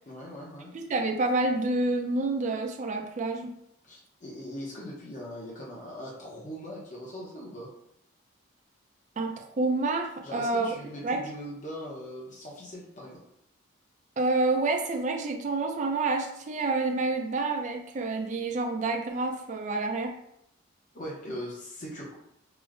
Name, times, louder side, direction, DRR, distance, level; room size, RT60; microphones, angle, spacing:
voice 1, 0.0-0.7 3.8-7.7 10.2-13.2 20.9-22.1, equal, 35° left, -5 dB, 0.6 m, -40 dB
voice 2, 0.7-3.5 9.2-10.7 11.0-11.2 14.2-20.1, right 2 dB, 35° right, 4 dB, 0.3 m, -28 dB
4.8 x 2.0 x 2.4 m, 0.77 s
head